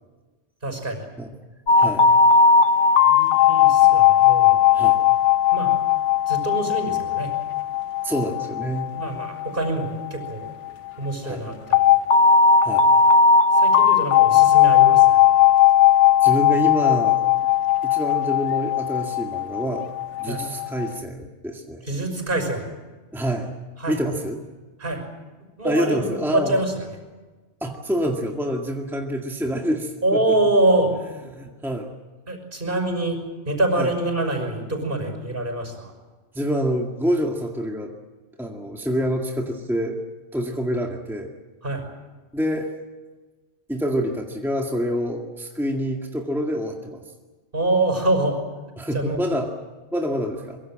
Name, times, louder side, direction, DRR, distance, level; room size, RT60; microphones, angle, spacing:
voice 1, 0.6-1.0 3.1-4.6 5.5-5.7 6.3-7.3 8.9-10.5 11.0-11.9 13.5-15.2 20.3-20.4 21.8-22.6 23.8-24.0 24.8-25.0 25.6-26.9 30.0-30.9 32.3-33.2 33.5-35.9 41.6-41.8 47.5-48.4 48.9-49.2, right 2 dB, 45° right, 5 dB, 6.1 m, -25 dB
sound 1, 1.7-10.5 11.7-20.9, left 7 dB, 80° left, 1.4 m, -17 dB
voice 2, 1.8-2.1 4.7-5.0 8.0-8.9 11.2-11.4 12.6-12.9 16.2-17.2 17.8-19.9 20.2-21.9 23.1-23.5 23.9-24.4 25.6-26.5 27.6-30.4 31.3-31.9 33.8-33.9 36.3-37.9 38.4-40.0 40.3-41.3 42.3-42.7 43.7-47.0 48.8-49.5 49.9-50.6, equal, ahead, 1 dB, 2.0 m, -26 dB
24.5 x 23.0 x 7.7 m, 1.3 s
omnidirectional pair, 1.2 m